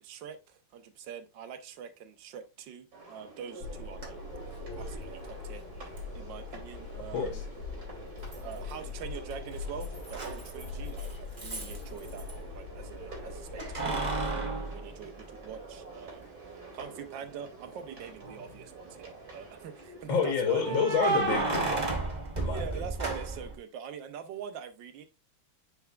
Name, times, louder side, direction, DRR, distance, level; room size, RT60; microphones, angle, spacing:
voice 1, 0.0-4.2 4.8-5.6 6.1-7.4 8.4-12.3 12.5-16.3 16.7-20.8 22.4-25.0, right 7 dB, 75° right, 1.5 m, -44 dB
sound 1, 2.9-21.6, right 3 dB, 50° right, 2.8 m, -48 dB
sound 2, 3.6-14.3, left 4 dB, 55° left, 1.9 m, -42 dB
Keys jangling, 4.0-4.1 6.0-6.1 8.3-8.9 9.1-12.3 13.6-15.7 16.2-16.3 18.1-18.6 20.6-23.6, right 3 dB, 25° right, 1.2 m, -33 dB
voice 2, 20.1-22.1 22.4-22.6, left 6 dB, 80° left, 1.8 m, -29 dB
9.5 x 4.5 x 2.3 m
omnidirectional pair, 2.1 m